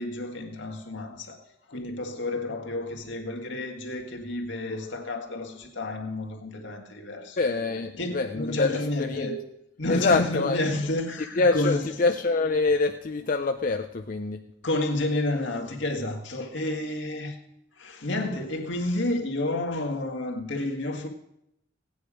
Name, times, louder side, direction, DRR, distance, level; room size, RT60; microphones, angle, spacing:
voice 1, 0.0-7.4 8.0-9.5 9.8-11.9 14.6-17.4 17.8-21.1, left 2 dB, 75° left, 1.9 m, -30 dB
voice 2, 7.4-9.4 9.9-10.6 11.4-14.4, left 3 dB, 45° left, 0.5 m, -25 dB
16.5 x 9.4 x 5.0 m
head